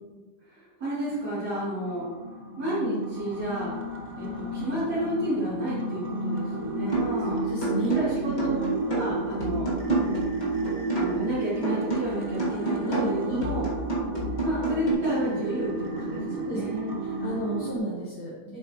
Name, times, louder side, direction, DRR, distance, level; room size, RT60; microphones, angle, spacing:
voice 1, 0.5-2.1 2.6-3.7 4.2-7.4 7.9-9.7 10.9-13.7 14.4-17.0, equal, 65° right, -12 dB, 3.6 m, -31 dB
sound 1, 1.0-17.8, right 2 dB, 40° right, 1.0 m, -32 dB
sound 2, 6.9-7.2 7.6-11.3 11.6-14.9, right 3 dB, 25° left, 2.0 m, -29 dB
voice 2, 7.3-8.0 12.8-13.4 16.0-16.1 16.3-18.6, right 1 dB, 70° left, -7 dB, 2.3 m, -33 dB
9.0 x 7.8 x 3.1 m, 1.3 s
omnidirectional pair, 1.8 m